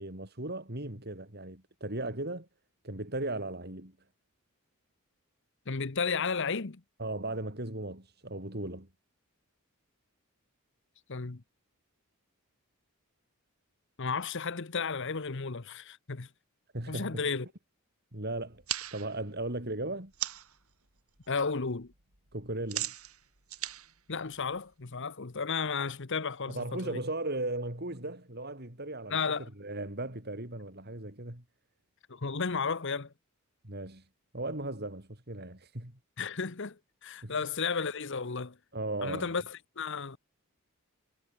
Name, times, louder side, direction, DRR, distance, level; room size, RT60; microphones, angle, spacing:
voice 1, 0.0-2.5 2.8-3.9 7.0-8.9 16.7-17.2 18.1-18.6 18.9-20.1 22.3-22.9 26.5-29.2 29.6-31.4 33.6-34.0 34.3-35.9 37.2-37.4 38.7-39.3, right 2 dB, 45° right, 4.4 m, -37 dB
voice 2, 5.7-6.8 11.1-11.4 14.0-16.3 16.9-17.5 21.3-21.9 24.1-27.0 29.1-29.5 32.1-33.1 36.2-38.5 39.0-40.2, left 5 dB, 55° left, 1.0 m, -33 dB
sound 1, 18.4-20.6 21.0-21.4 21.7-24.9, right 13 dB, 80° right, 6.0 m, -39 dB
head